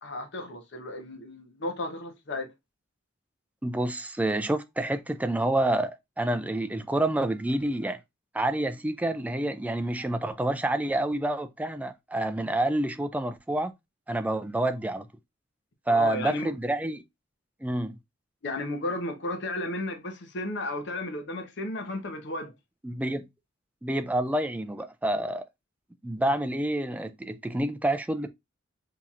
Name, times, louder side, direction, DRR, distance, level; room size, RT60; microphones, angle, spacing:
voice 1, 0.0-2.5 15.9-16.5 18.4-22.5, left 2 dB, 60° left, 0.8 m, -34 dB
voice 2, 3.6-8.0 8.3-13.7 14.1-15.1 15.9-17.0 17.6-18.0 22.8-23.3 23.8-25.4 26.0-28.3, right 1 dB, 10° right, 0.3 m, -28 dB
5.5 x 2.9 x 2.4 m
head